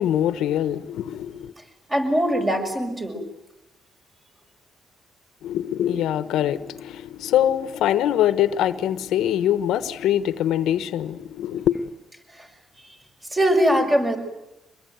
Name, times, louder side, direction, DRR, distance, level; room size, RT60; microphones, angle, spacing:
voice 1, 0.0-1.5 5.4-11.9, left 11 dB, 85° left, 1.1 m, -23 dB
voice 2, 1.9-3.2 12.4-12.5 13.3-14.2, equal, 20° right, 6.4 m, -21 dB
24.5 x 21.5 x 9.3 m
cardioid pair, 90°, 0 cm